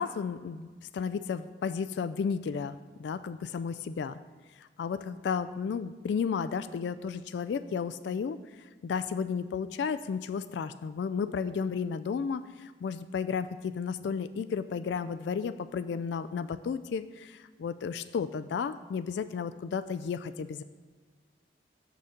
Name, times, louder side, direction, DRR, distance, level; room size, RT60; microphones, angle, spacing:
voice 1, 0.0-4.2 4.6-20.6, left 6 dB, 75° left, 12 dB, 0.3 m, -33 dB
6.7 x 5.1 x 7.0 m, 1.4 s
head